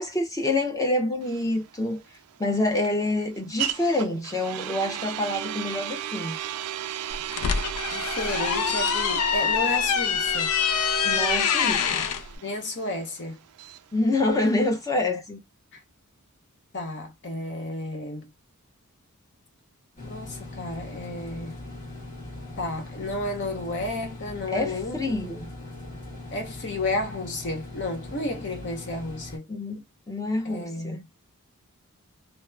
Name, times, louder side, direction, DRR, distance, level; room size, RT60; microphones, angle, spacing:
voice 1, 0.0-2.0 2.4-6.4 11.0-12.1 13.9-15.4 24.5-25.5 29.5-31.0, left 2 dB, 15° left, 0.7 m, -27 dB
sound 1, 1.2-15.0, right 11 dB, 75° right, 0.3 m, -35 dB
sound 2, 7.1-12.2, left 7 dB, 80° left, 0.4 m, -25 dB
voice 2, 7.9-10.5 12.4-13.4 15.7-15.8 16.7-18.3 20.0-21.5 22.6-25.0 26.3-29.5 30.4-31.0, left 2 dB, 55° left, 0.8 m, -32 dB
sound 3, 20.0-29.4, left 2 dB, 35° left, 1.3 m, -40 dB
2.9 x 2.1 x 2.2 m
head